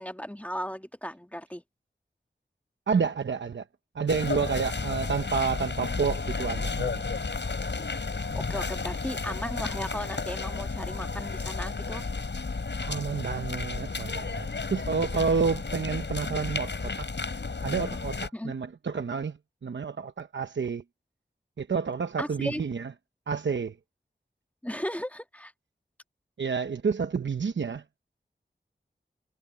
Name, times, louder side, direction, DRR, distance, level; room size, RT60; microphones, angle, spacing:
voice 1, 0.0-1.6 7.8-12.0 18.3-18.5 22.2-22.6 24.6-25.5, equal, 10° left, 1.7 m, -36 dB
voice 2, 2.9-3.6 3.9-7.0 12.8-17.1 17.6-20.8 21.6-22.9 23.3-23.7 26.4-27.8, right 5 dB, 80° right, 0.9 m, -29 dB
sound 1, 4.1-18.3, left 4 dB, 75° left, 6.7 m, -32 dB
wide cardioid pair, 50°, 19 cm